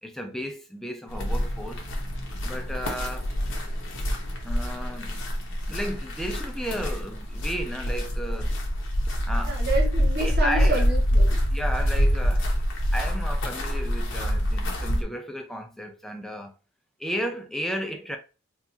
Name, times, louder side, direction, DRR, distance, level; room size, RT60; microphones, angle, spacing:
voice 1, 0.0-1.9 2.4-3.3 4.4-5.2 5.7-8.6 9.2-9.6 10.2-10.8 11.5-12.5 12.9-16.5 17.0-18.2, equal, ahead, 0.4 m, -33 dB
sound 1, 1.1-15.0, equal, 55° left, 0.9 m, -26 dB
voice 2, 9.5-11.4, right 2 dB, 45° right, 1.6 m, -29 dB
4.0 x 2.5 x 2.7 m
head